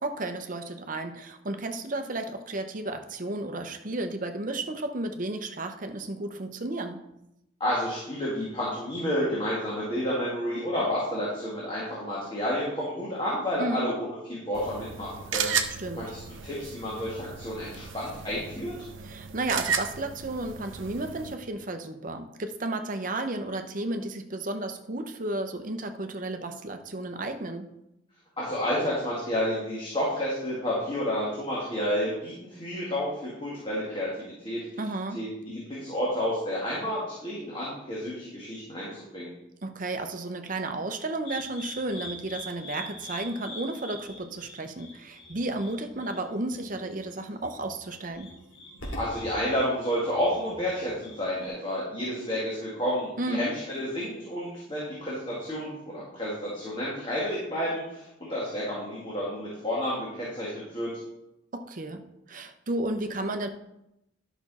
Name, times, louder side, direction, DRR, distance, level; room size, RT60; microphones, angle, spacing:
voice 1, 0.0-7.0 13.6-13.9 15.8-16.1 19.0-27.7 34.8-35.2 39.6-48.3 53.2-53.5 61.5-63.5, right 2 dB, 40° right, 0.8 m, -33 dB
voice 2, 7.6-18.7 28.4-34.6 35.1-39.3 48.9-60.9, equal, 25° left, 2.1 m, -30 dB
sound 1, 14.5-21.3, right 6 dB, 80° right, 0.8 m, -34 dB
sound 2, 41.3-51.5, equal, 75° left, 2.5 m, -43 dB
11.0 x 6.0 x 4.2 m
head